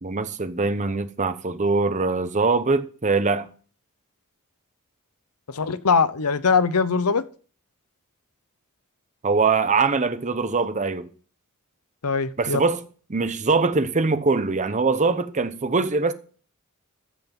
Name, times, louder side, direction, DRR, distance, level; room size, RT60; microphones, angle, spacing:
voice 1, 0.0-3.5 9.2-11.1 12.4-12.8 13.1-16.1, right 4 dB, 35° right, 0.8 m, -22 dB
voice 2, 5.5-7.2 12.0-12.6, left 5 dB, 85° left, 0.8 m, -21 dB
14.0 x 6.0 x 5.3 m
head